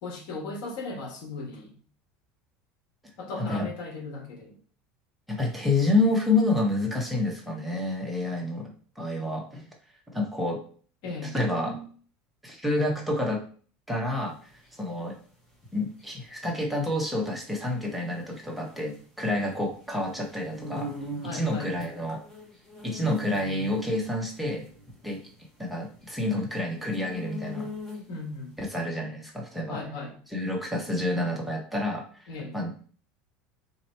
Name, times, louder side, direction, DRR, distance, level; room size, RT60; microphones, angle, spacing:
voice 1, 0.0-1.7 3.2-4.6 11.0-11.3 21.2-21.8 28.1-28.5 29.7-30.2 32.3-32.6, left 3 dB, 70° left, 2 dB, 1.3 m, -37 dB
voice 2, 3.4-3.7 5.3-8.7 9.0-9.7 10.1-10.6 11.2-11.9 12.4-13.4 13.9-15.1 15.7-20.9 21.3-22.2 22.8-24.7 25.0-25.2 25.6-27.7 28.6-29.8 30.3-32.7, left 2 dB, ahead, -1 dB, 0.9 m, -28 dB
sound 1, 14.1-28.3, left 1 dB, 15° left, 1.3 m, -41 dB
3.8 x 3.0 x 4.3 m, 0.44 s
supercardioid pair, 140°, 4 cm